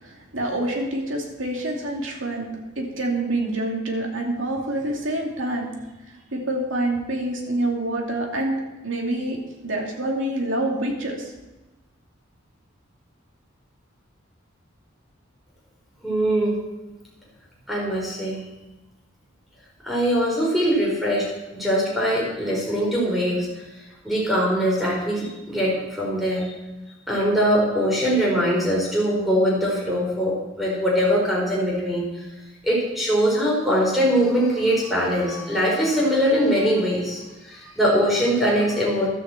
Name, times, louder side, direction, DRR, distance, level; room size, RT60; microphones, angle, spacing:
voice 1, 0.0-2.5 2.8-5.7 6.1-8.6 8.8-9.4 9.6-11.3, right 1 dB, 70° right, 0 dB, 2.6 m, -26 dB
voice 2, 16.0-16.6 17.7-18.4 19.9-23.5 24.0-26.5 27.1-32.1 32.6-37.2 37.5-39.1, equal, ahead, -5 dB, 4.2 m, -22 dB
12.0 x 7.3 x 7.6 m, 1.1 s
head